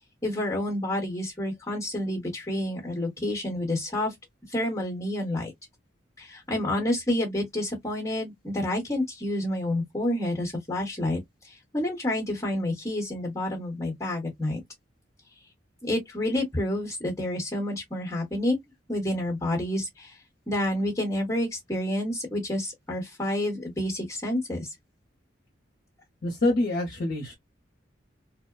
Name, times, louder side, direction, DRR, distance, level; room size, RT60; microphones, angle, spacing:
voice 1, 0.2-4.1 4.5-5.5 6.2-11.2 11.4-14.6 15.8-18.6 18.9-20.2 20.5-24.7, left 1 dB, 15° left, 1.0 m, -29 dB
voice 2, 26.2-27.3, left 2 dB, 50° left, 0.8 m, -26 dB
2.8 x 2.1 x 2.3 m
head